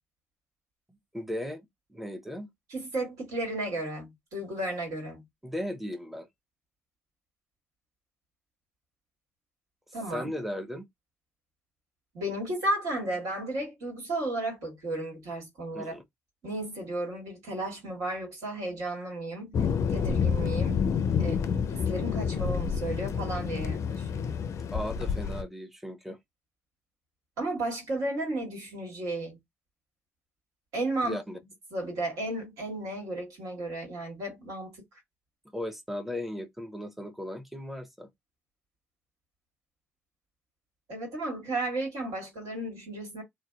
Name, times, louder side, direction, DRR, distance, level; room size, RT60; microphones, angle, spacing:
voice 1, 1.1-1.6 1.9-2.5 5.4-6.3 10.1-10.8 15.7-16.0 21.2-21.6 24.7-26.2 31.0-31.4 35.4-38.1, left 1 dB, 5° right, 0.7 m, -36 dB
voice 2, 2.7-5.2 9.9-10.3 12.1-16.0 16.4-19.5 19.9-20.8 21.2-21.3 21.7-24.4 27.4-29.4 30.7-31.2 31.7-34.8 40.9-43.2, right 1 dB, 70° right, 1.5 m, -33 dB
Thunder, 19.5-25.4, left 6 dB, 55° left, 0.4 m, -28 dB
2.6 x 2.1 x 2.2 m
hypercardioid pair, 50°, 6 cm